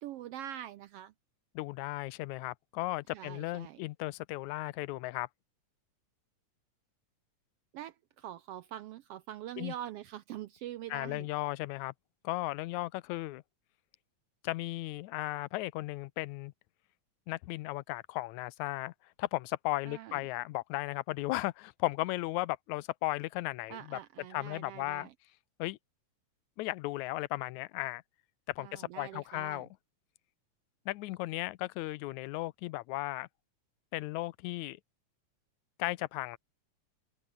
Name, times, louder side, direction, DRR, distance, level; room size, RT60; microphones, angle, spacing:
voice 1, 0.0-1.1 3.1-3.8 7.7-11.3 19.9-20.2 23.7-25.1 28.6-29.6, right 12 dB, 80° right, 1.4 m, -44 dB
voice 2, 1.6-5.3 9.6-9.7 10.9-11.9 12.2-13.4 14.4-16.5 17.3-18.9 19.2-24.0 24.3-25.1 25.6-25.8 26.6-28.0 28.5-29.7 30.9-33.3 33.9-34.8 35.8-36.4, left 18 dB, 85° left, 2.0 m, -35 dB
open air
omnidirectional pair, 3.3 m